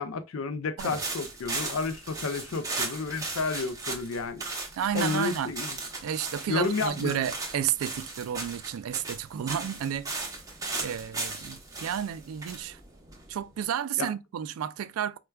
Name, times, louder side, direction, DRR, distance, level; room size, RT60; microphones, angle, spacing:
voice 1, 0.0-4.4 4.9-5.7 6.5-7.2 14.0-14.1, left 4 dB, 75° left, 0.4 m, -31 dB
sound 1, 0.8-13.6, right 3 dB, 15° right, 0.7 m, -37 dB
voice 2, 4.7-5.5 6.0-10.1 10.8-12.8 13.3-15.2, right 9 dB, 85° right, 0.3 m, -31 dB
4.4 x 2.2 x 2.2 m
head